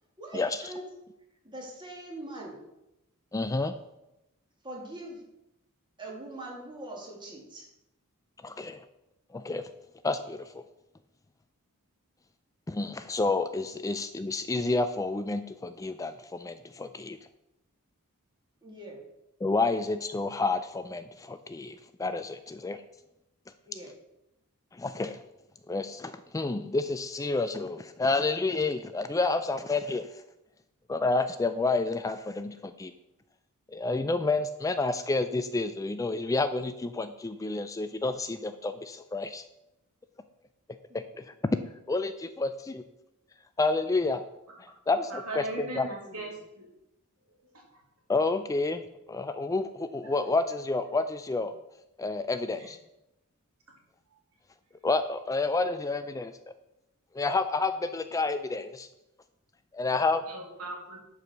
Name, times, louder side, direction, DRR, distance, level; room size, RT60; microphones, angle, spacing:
voice 1, 0.2-0.8 1.4-2.6 4.6-5.2 6.0-7.6 18.6-19.0 23.7-23.9 45.7-46.3, right 2 dB, 20° right, -2 dB, 2.3 m, -42 dB
voice 2, 3.3-3.8 8.4-8.8 9.3-9.7 10.0-10.6 12.7-17.2 19.4-22.8 24.7-25.2 25.7-30.1 30.9-32.9 33.7-39.4 40.9-41.2 41.9-42.8 43.6-44.3 44.6-45.9 48.1-48.8 49.1-51.5 52.0-52.8 54.8-56.4 57.1-58.9 59.7-60.2, left 3 dB, 15° left, 10 dB, 0.3 m, -29 dB
voice 3, 45.1-46.7 60.3-61.0, right 2 dB, 70° right, 0 dB, 2.6 m, -38 dB
10.5 x 4.8 x 6.6 m, 0.89 s
head